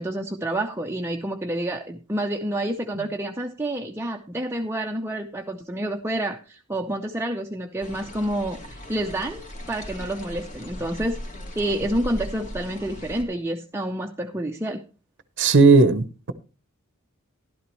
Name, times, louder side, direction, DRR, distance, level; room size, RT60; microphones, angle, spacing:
voice 1, 0.0-11.2 11.6-14.8, right 1 dB, 10° right, 0.6 m, -29 dB
sound 1, 7.8-13.2, equal, 35° left, 2.1 m, -38 dB
voice 2, 15.4-16.3, right 3 dB, 55° right, 0.8 m, -16 dB
12.5 x 12.0 x 3.0 m
head